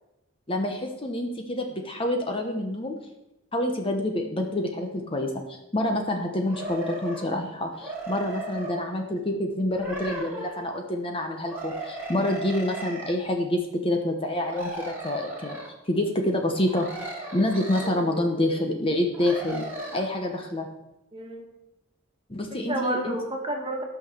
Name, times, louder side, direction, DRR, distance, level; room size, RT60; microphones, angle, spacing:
voice 1, 0.5-2.9 3.5-15.6 15.9-16.9 17.3-19.6 19.9-20.7 22.3-23.2, left 1 dB, 25° left, 3 dB, 1.0 m, -27 dB
sound 1, 6.4-7.3 7.7-8.8 9.7-10.7 11.5-13.1 14.4-15.7 16.6-17.9 19.1-20.0, right 2 dB, 10° right, 2.5 m, -36 dB
voice 2, 17.8-18.7 21.1-21.5 22.5-23.8, right 1 dB, 25° right, 1 dB, 1.8 m, -32 dB
13.0 x 5.9 x 6.7 m, 0.93 s
head